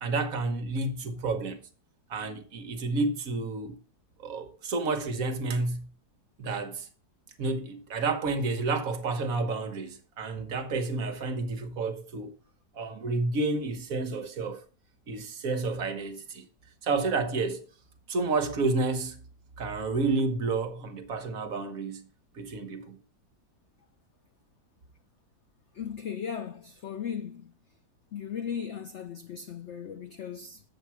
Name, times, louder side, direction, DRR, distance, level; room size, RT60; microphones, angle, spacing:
voice 1, 0.0-1.7 2.1-3.8 4.2-5.9 6.4-6.9 7.4-12.3 12.7-14.6 15.1-16.5 16.8-17.6 18.1-19.2 19.6-22.1 22.3-23.0, right 3 dB, 60° right, 1.3 m, -30 dB
voice 2, 25.7-27.5 28.1-30.6, left 7 dB, 80° left, 0.6 m, -37 dB
7.4 x 7.2 x 4.6 m
omnidirectional pair, 1.8 m